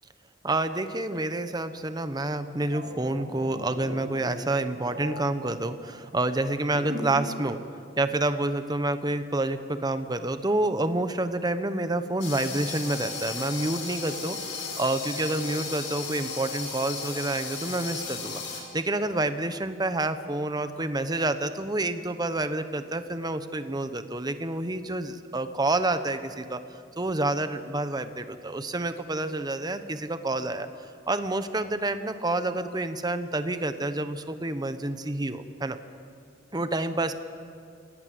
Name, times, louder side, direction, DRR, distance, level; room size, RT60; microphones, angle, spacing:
voice 1, 0.4-7.6 8.0-26.6 27.0-30.7 31.1-35.8 36.5-37.2, right 2 dB, 20° right, 10 dB, 1.0 m, -28 dB
sound 1, 2.6-7.4 7.6-7.9, equal, 45° right, 6.3 m, -39 dB
sound 2, 12.2-18.6, left 5 dB, 80° left, 5.0 m, -35 dB
27.0 x 17.5 x 7.8 m, 2.3 s
head